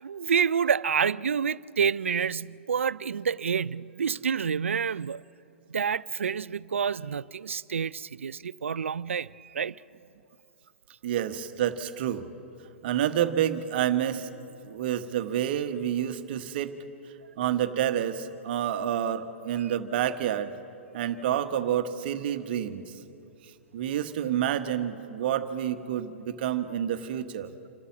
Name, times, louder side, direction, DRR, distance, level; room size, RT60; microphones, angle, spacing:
voice 1, 0.0-5.2 5.7-9.7, right 6 dB, 75° right, 0.4 m, -28 dB
voice 2, 11.0-12.2 12.8-14.3 14.6-16.7 17.4-20.5 20.9-22.9 23.7-27.5, right 10 dB, 50° right, 1.2 m, -28 dB
28.0 x 13.0 x 7.2 m
figure-of-eight pair, 115°, 7 cm